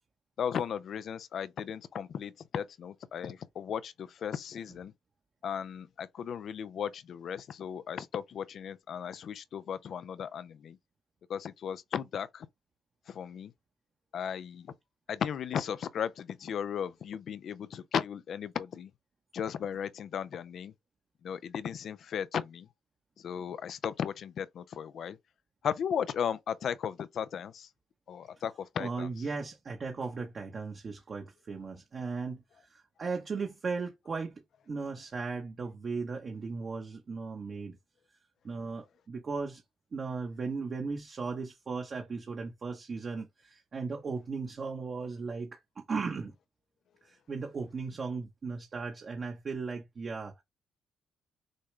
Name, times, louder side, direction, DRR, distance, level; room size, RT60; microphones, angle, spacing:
voice 1, 0.4-4.9 5.4-10.8 11.3-12.5 13.1-13.5 14.1-14.7 15.1-18.9 19.3-20.7 21.2-22.7 23.2-25.2 25.6-27.7 28.1-29.1, left 8 dB, 65° left, 0.4 m, -36 dB
voice 2, 28.8-37.8 38.4-39.6 39.9-46.3 47.0-50.4, right 4 dB, 45° right, 0.9 m, -37 dB
6.4 x 2.3 x 3.2 m
cardioid pair, 90°, 0 cm